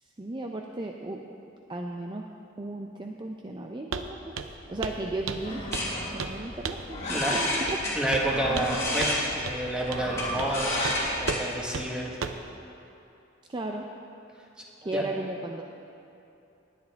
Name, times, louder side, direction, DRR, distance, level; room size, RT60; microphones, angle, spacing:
voice 1, 0.2-1.2 1.7-2.3 2.6-4.3 4.7-5.6 6.1-8.0 13.5-13.8 14.8-15.6, right 2 dB, 25° right, 2 dB, 0.5 m, -35 dB
Walk footsteps, 3.9-4.1 4.4-4.6 4.8-5.0 5.3-5.9 6.2-6.4 6.7-6.9 7.7-7.8 8.1-8.7 9.0-9.2 9.5-9.6 9.9-10.1 10.4-10.6 10.8-11.0 11.3-11.5 11.7-11.9 12.2-12.5, right 5 dB, 85° right, 0.6 m, -33 dB
sound 1, 4.5-11.3, left 1 dB, 15° left, 3.0 m, -34 dB
Livestock farm animals working animals, 5.3-11.0, left 1 dB, 35° left, 2.1 m, -35 dB
voice 2, 7.1-7.4 7.9-10.8 11.2-12.1 14.9-15.0, right 1 dB, 5° right, -3 dB, 1.6 m, -29 dB
19.0 x 9.7 x 3.5 m, 2.8 s
head